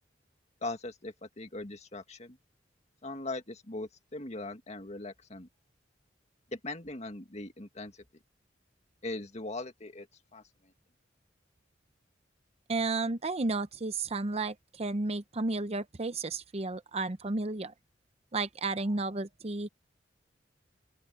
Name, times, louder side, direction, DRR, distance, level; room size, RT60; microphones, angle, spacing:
voice 1, 0.6-2.4 3.0-5.5 6.5-7.9 9.0-10.1 10.3-10.4, left 2 dB, 35° left, 2.0 m, -40 dB
voice 2, 12.7-17.7 18.3-19.7, right 3 dB, 35° right, 0.7 m, -32 dB
open air
head